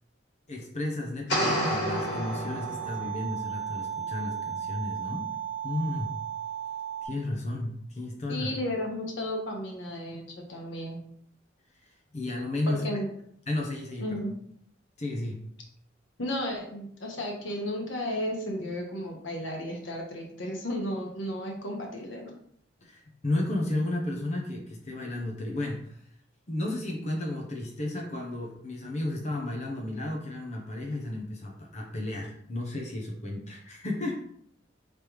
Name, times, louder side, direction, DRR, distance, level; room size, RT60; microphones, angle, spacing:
voice 1, 0.5-5.3 5.6-6.2 7.0-8.5 11.8-12.8 13.5-14.2 15.0-15.5 22.8-26.0 26.5-34.2, left 1 dB, 40° left, 0 dB, 0.7 m, -33 dB
sound 1, 1.3-3.2, equal, 65° left, 1.9 m, -29 dB
sound 2, 1.9-7.1, right 8 dB, 35° right, 1.3 m, -35 dB
voice 2, 8.3-11.0 12.7-13.1 14.0-14.3 16.2-22.3, left 1 dB, 80° left, 0 dB, 1.2 m, -33 dB
5.2 x 3.3 x 3.0 m, 0.67 s
head